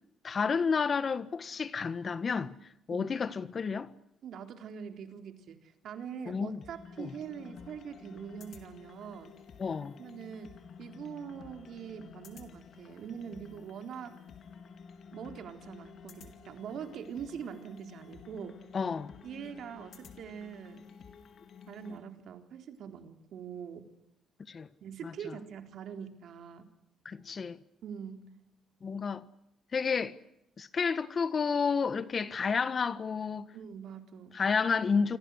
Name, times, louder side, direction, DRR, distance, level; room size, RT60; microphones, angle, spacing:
voice 1, 0.2-2.5 2.9-3.9 6.3-6.6 7.0-7.1 9.6-10.0 18.7-19.1 24.5-24.7 25.0-25.1 27.0-27.6 28.8-29.2 29.7-30.1 30.6-33.5 34.3-35.2, left 5 dB, 40° left, 1.5 m, -30 dB
voice 2, 4.2-9.4 10.0-14.2 15.1-18.6 19.2-20.8 21.7-23.9 24.8-26.7 27.8-28.3 33.5-34.4, right 7 dB, 70° right, 3.8 m, -43 dB
sound 1, 6.6-22.0, left 6 dB, 60° left, 4.2 m, -52 dB
29.0 x 25.0 x 6.5 m
cardioid pair, 90°, 0 cm